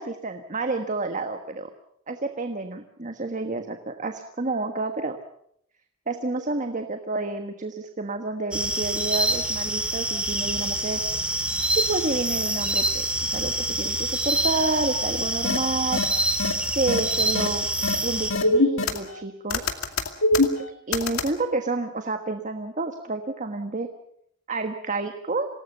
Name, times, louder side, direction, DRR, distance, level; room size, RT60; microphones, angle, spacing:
voice 1, 0.0-1.7 2.1-5.2 6.1-11.0 11.8-13.1 13.3-16.0 16.7-17.7 18.0-19.6 20.9-23.9 24.5-25.5, right 3 dB, 35° right, 7 dB, 1.4 m, -29 dB
sound 1, 8.5-18.3, right 1 dB, 5° right, 3.0 m, -26 dB
sound 2, 15.4-15.6 15.9-16.0 16.4-16.5 16.9-17.0 17.3-17.5 17.8-17.9 18.3-19.2 19.5-21.3, left 2 dB, 85° left, 2.4 m, -22 dB
27.0 x 18.5 x 7.0 m, 0.71 s
head